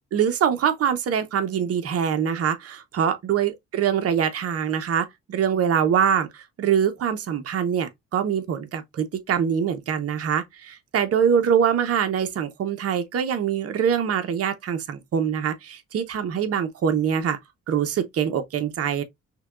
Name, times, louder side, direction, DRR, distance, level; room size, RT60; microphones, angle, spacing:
voice 1, 0.1-17.4 17.7-19.0, right 8 dB, 50° right, 0.8 m, -24 dB
5.6 x 2.2 x 2.3 m
cardioid pair, 90°, 30 cm